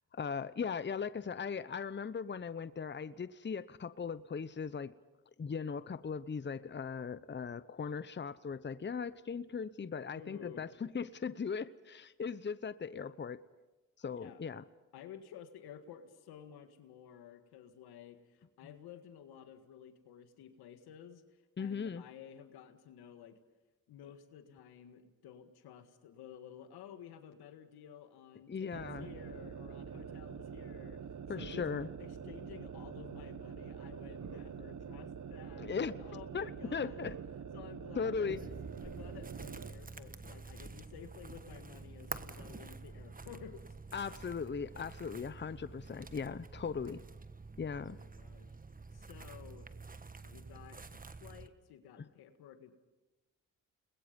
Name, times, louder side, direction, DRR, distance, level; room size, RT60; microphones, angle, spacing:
voice 1, 0.1-4.9 5.4-13.4 14.0-14.6 21.6-22.0 28.5-29.1 31.3-31.9 35.6-37.2 38.0-38.4 43.9-47.0 47.6-48.0, left 6 dB, 30° left, 15 dB, 0.9 m, -38 dB
voice 2, 10.1-10.7 14.1-14.4 14.9-21.2 21.6-23.4 23.9-31.1 31.3-31.7 32.0-35.7 36.0-37.0 37.5-38.6 38.8-43.6 47.7-48.5 48.9-49.7 50.2-50.8 51.2-52.7, left 9 dB, 85° left, 8 dB, 1.8 m, -53 dB
sound 1, 28.7-39.8, right 7 dB, 50° right, 1.3 m, -45 dB
sound 2, 38.3-51.5, right 4 dB, 25° right, 1.3 m, -48 dB
30.0 x 21.0 x 5.3 m, 1.1 s
supercardioid pair, 50°, 37 cm